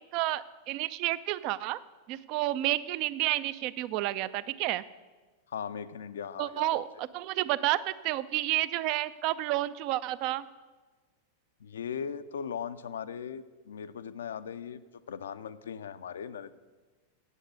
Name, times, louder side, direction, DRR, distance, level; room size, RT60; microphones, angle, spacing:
voice 1, 0.1-1.8 2.1-4.8 6.4-10.5, right 16 dB, 40° right, 17 dB, 0.4 m, -30 dB
voice 2, 5.5-6.7 11.6-14.8 15.1-16.6, left 7 dB, 65° left, 14 dB, 0.4 m, -38 dB
8.2 x 7.9 x 8.1 m, 1.3 s
figure-of-eight pair, 90°, 0 cm